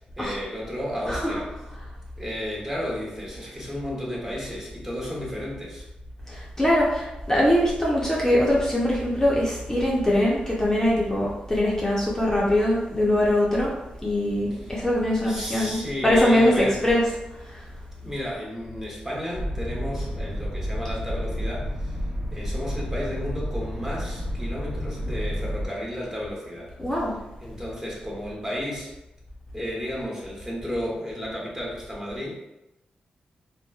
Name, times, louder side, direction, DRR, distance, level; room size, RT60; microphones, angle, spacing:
voice 1, 0.2-1.5 2.2-5.9 14.5-14.8 15.2-16.8 18.0-22.0 22.3-26.7 27.4-28.9 29.5-32.4, equal, 20° right, -4 dB, 0.9 m, -33 dB
voice 2, 1.1-1.4 6.3-13.7 14.0-17.2 17.4-17.6 26.8-27.1, left 1 dB, 15° left, -5 dB, 0.6 m, -22 dB
sound 1, 19.3-25.7, equal, 50° right, 0.6 m, -30 dB
2.9 x 2.2 x 2.3 m, 0.95 s
cardioid pair, 60°, 3 cm